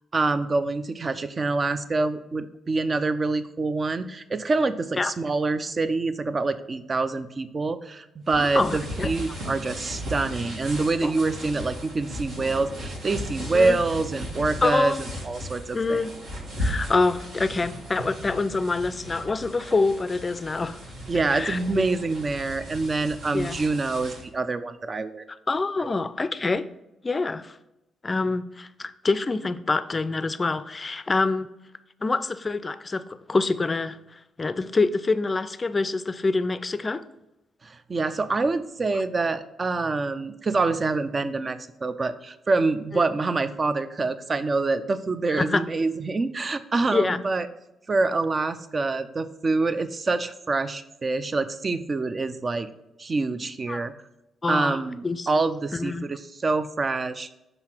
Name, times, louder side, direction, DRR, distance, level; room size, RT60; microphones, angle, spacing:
voice 1, 0.1-14.9 15.3-16.0 21.1-25.2 25.8-25.9 37.6-47.5 47.9-52.7 53.0-53.9 54.5-57.3, right 3 dB, 40° right, 12 dB, 0.5 m, -26 dB
voice 2, 8.3-9.1 11.0-11.2 13.5-13.8 14.6-15.0 15.7-16.1 16.6-20.8 21.3-21.8 23.3-23.6 25.5-26.7 27.0-27.6 28.0-31.5 32.0-37.0 45.3-45.7 46.9-47.2 53.7-53.8 54.4-55.3 55.7-56.1, left 3 dB, 35° left, 14 dB, 0.4 m, -26 dB
sound 1, 8.3-24.3, equal, 70° right, 1.5 m, -36 dB
5.7 x 3.9 x 4.4 m, 0.93 s
supercardioid pair, 55°, 0 cm